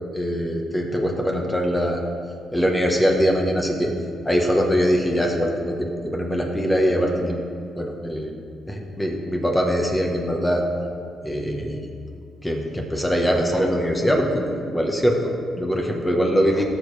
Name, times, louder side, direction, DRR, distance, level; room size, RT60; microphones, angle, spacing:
voice 1, 0.1-2.0 2.5-3.9 4.2-7.4 7.8-8.3 8.7-10.6 11.2-11.9 12.4-16.6, equal, 10° left, 1 dB, 1.2 m, -22 dB
16.5 x 6.5 x 3.4 m, 2.4 s
cardioid pair, 90°, 0 cm